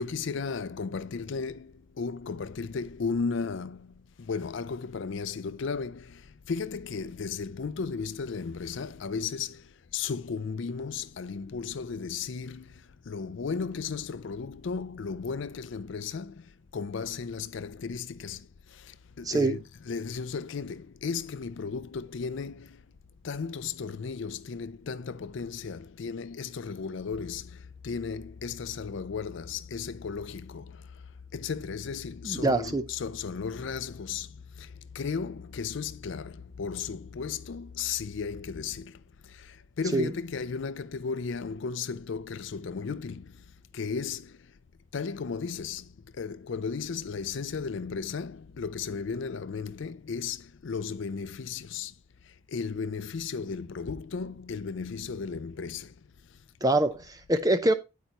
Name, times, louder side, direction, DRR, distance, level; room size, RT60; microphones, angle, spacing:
voice 1, 0.0-22.8 23.2-30.9 31.3-43.3 43.7-44.4 44.9-51.9 52.5-55.9, left 5 dB, 60° left, 0.4 m, -35 dB
voice 2, 19.2-19.6 32.2-32.8 39.9-40.1 56.6-57.7, right 2 dB, 15° right, 0.6 m, -24 dB
sound 1, 27.1-38.6, left 5 dB, 85° right, 5.3 m, -49 dB
9.2 x 8.3 x 2.9 m
head